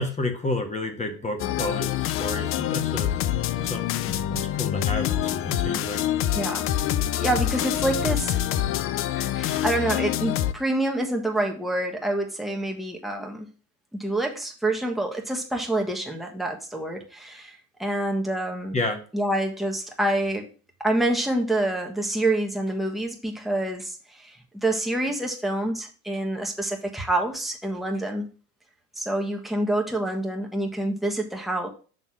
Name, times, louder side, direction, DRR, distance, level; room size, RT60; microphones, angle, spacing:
voice 1, 0.0-3.1 3.6-6.0 18.7-19.0, left 2 dB, 15° left, 5 dB, 1.3 m, -31 dB
sound 1, 1.4-10.5, left 12 dB, 30° left, 0.4 m, -26 dB
voice 2, 6.3-6.7 7.1-8.4 9.1-13.5 13.9-18.8 19.1-20.5 20.8-28.3 29.0-31.7, right 1 dB, ahead, 1 dB, 1.4 m, -27 dB
6.6 x 3.5 x 5.8 m, 0.37 s
hypercardioid pair, 100°, 45 cm